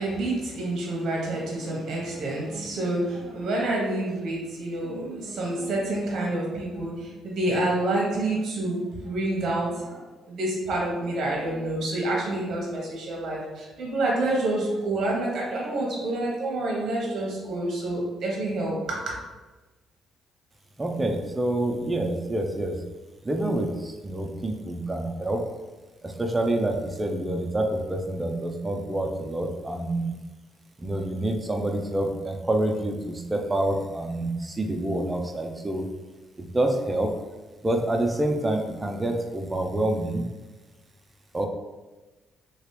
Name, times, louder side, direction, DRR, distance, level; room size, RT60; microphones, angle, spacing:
voice 1, 0.0-19.1, right 2 dB, 60° right, -3 dB, 1.0 m, -28 dB
voice 2, 20.8-22.8 23.2-25.4 26.0-30.1 30.8-35.9 36.4-37.1 37.6-40.3 41.3-41.5, right 1 dB, 20° right, 3 dB, 0.5 m, -27 dB
3.0 x 2.9 x 3.2 m, 1.2 s
cardioid pair, 90°, 0 cm